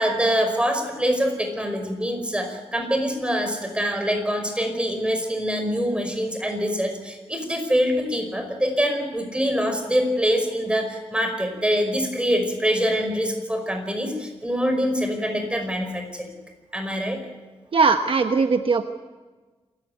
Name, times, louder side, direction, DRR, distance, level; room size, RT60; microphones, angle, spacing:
voice 1, 0.0-16.3 16.7-17.2, equal, 10° right, 5 dB, 5.1 m, -24 dB
voice 2, 17.7-18.8, right 4 dB, 60° right, 7 dB, 1.2 m, -19 dB
27.0 x 15.5 x 9.4 m, 1.3 s
wide cardioid pair, 110°, 11 cm